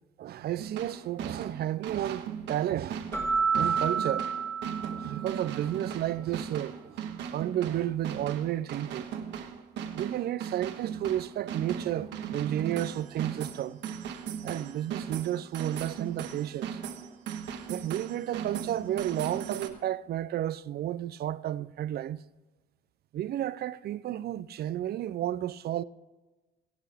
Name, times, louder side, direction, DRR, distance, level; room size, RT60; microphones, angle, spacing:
voice 1, 0.2-3.1 3.5-4.3 4.9-7.0 7.3-9.1 9.9-13.8 14.4-16.8 17.7-22.2 23.1-25.8, right 12 dB, 60° right, 0.5 m, -32 dB
sound 1, 0.6-19.7, right 8 dB, 80° right, 1.5 m, -38 dB
Keyboard (musical), 3.1-5.5, right 5 dB, 15° left, 2.2 m, -29 dB
21.5 x 7.9 x 3.5 m
cardioid pair, 90°, 18 cm